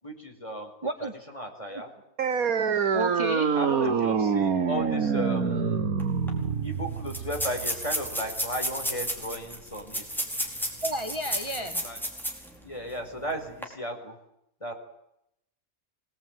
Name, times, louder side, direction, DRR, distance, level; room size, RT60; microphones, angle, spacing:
voice 1, 0.0-0.7 1.0-1.9 3.5-5.9 6.6-10.0 11.6-12.0 12.6-14.2 14.6-14.7, equal, 20° left, 3 dB, 4.9 m, -35 dB
voice 2, 0.8-1.1 2.9-3.5 10.8-11.8, right 1 dB, 20° right, 5 dB, 1.6 m, -31 dB
sound 1, 2.2-9.2, right 6 dB, 80° right, 1.8 m, -26 dB
sound 2, 6.0-6.1 6.3-6.4 7.1-12.5 12.9-13.0 13.5-13.6, equal, ahead, 5.0 m, -32 dB
26.0 x 20.0 x 9.3 m, 0.81 s
omnidirectional pair, 1.5 m